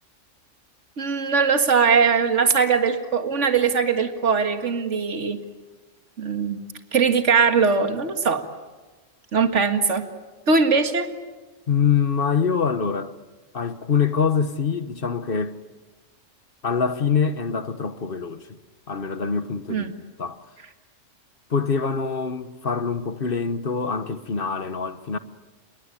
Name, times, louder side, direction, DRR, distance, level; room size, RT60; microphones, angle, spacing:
voice 1, 1.0-5.4 6.2-6.6 6.9-8.4 9.3-10.0 10.5-11.1 19.7-19.9, right 5 dB, 65° right, 2.1 m, -20 dB
voice 2, 11.7-13.1 13.5-15.6 16.6-18.6 18.9-20.4 21.5-25.2, left 6 dB, 45° left, 1.3 m, -24 dB
27.5 x 22.0 x 9.8 m
omnidirectional pair, 1.3 m